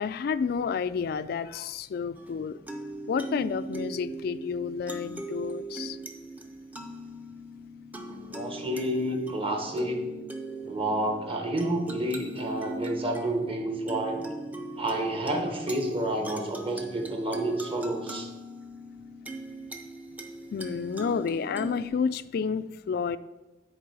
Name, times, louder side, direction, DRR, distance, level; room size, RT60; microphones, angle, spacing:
voice 1, 0.0-2.6 3.1-6.0 20.5-23.2, left 6 dB, 60° left, 0.3 m, -30 dB
sound 1, 2.2-21.9, right 2 dB, 10° right, 0.6 m, -40 dB
voice 2, 8.0-10.1 10.6-14.2 14.8-18.3, right 1 dB, 30° right, 1.1 m, -30 dB
9.9 x 4.4 x 4.7 m
head